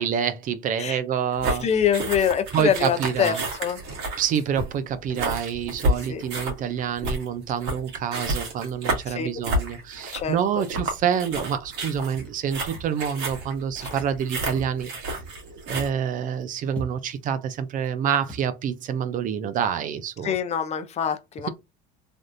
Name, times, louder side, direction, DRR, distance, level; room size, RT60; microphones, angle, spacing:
voice 1, 0.0-1.7 2.5-3.4 4.2-14.9 15.7-20.3, right 8 dB, 45° right, 0.4 m, -27 dB
sound 1, 1.4-15.9, right 1 dB, 65° right, 1.7 m, -30 dB
voice 2, 1.5-3.3 3.6-3.8 6.1-6.2 9.1-9.3 10.1-10.7 13.8-13.9 20.2-21.5, left 8 dB, 35° left, 0.5 m, -25 dB
Walk footsteps, 12.1-12.4 12.7-13.0 13.3-13.6 13.9-14.2 14.5-15.4 15.7-16.0 16.3-16.4 16.7-17.2 17.8-17.9 18.2-18.5, right 1 dB, 5° left, 0.8 m, -41 dB
3.4 x 2.4 x 2.5 m
cardioid pair, 125°, 20 cm